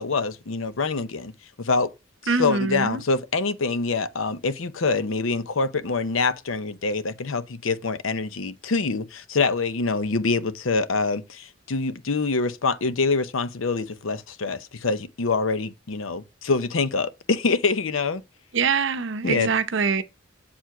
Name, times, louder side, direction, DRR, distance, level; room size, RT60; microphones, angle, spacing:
voice 1, 0.0-1.3 1.6-1.9 2.2-18.2 19.2-19.5, left 4 dB, 80° left, 0.8 m, -25 dB
voice 2, 2.3-3.0 18.5-20.0, right 5 dB, 65° right, 0.7 m, -24 dB
7.4 x 4.8 x 4.5 m
head